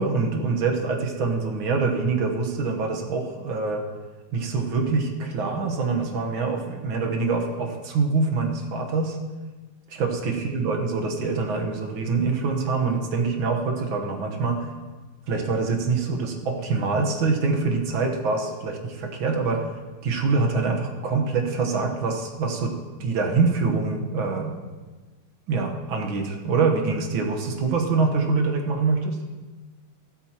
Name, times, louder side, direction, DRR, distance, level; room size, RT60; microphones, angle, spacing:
voice 1, 0.0-3.8 4.3-9.2 9.9-14.7 15.3-19.7 20.0-24.5 25.5-29.2, right 4 dB, 70° right, 2 dB, 2.0 m, -25 dB
14.5 x 12.5 x 3.0 m, 1.3 s
omnidirectional pair, 2.3 m